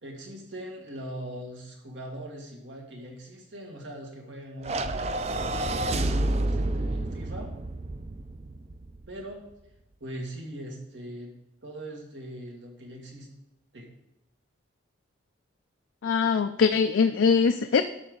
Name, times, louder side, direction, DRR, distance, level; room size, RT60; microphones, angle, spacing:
voice 1, 0.0-5.1 5.6-7.5 9.1-9.4 10.0-11.3 11.6-13.3 13.7-13.9, right 1 dB, 75° right, 0 dB, 2.1 m, -41 dB
sound 1, 4.6-9.1, right 1 dB, 35° right, 0.4 m, -29 dB
voice 2, 16.0-17.8, left 5 dB, 90° left, 8 dB, 0.4 m, -22 dB
11.5 x 6.7 x 3.8 m, 0.89 s
head